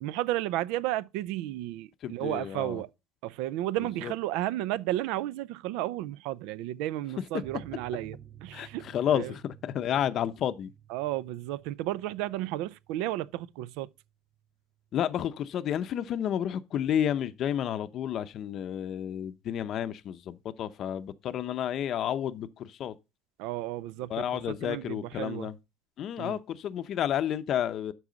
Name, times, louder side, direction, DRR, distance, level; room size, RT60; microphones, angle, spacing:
voice 1, 0.0-2.9 3.2-8.8 9.1-9.3 10.9-13.9 23.4-25.5 26.2-26.4, right 15 dB, 80° right, 0.4 m, -33 dB
voice 2, 2.0-2.8 4.0-4.1 8.5-10.7 14.9-22.9 24.1-25.5 26.0-27.9, left 10 dB, 40° left, 0.6 m, -31 dB
sound 1, 7.4-14.5 14.8-14.9 15.2-15.3, right 8 dB, 20° right, 0.7 m, -53 dB
12.5 x 4.8 x 3.9 m
cardioid pair, 160°, 0 cm